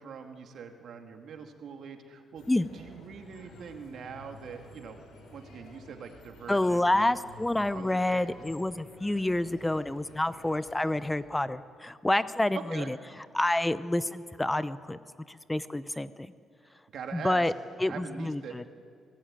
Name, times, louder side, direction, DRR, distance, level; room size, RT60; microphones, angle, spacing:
voice 1, 0.0-5.0 5.3-7.2 7.7-8.4 12.5-12.9 16.9-17.5 17.9-18.6, right 6 dB, 65° right, 5 dB, 2.4 m, -43 dB
sound 1, 2.4-11.1, left 2 dB, 85° left, 6.0 m, -52 dB
voice 2, 6.5-13.0 13.3-15.0 15.3-16.1 17.1-17.5 17.8-18.6, left 1 dB, 10° left, 14 dB, 0.7 m, -28 dB
23.0 x 19.0 x 9.0 m, 2.3 s
cardioid pair, 90°, 0 cm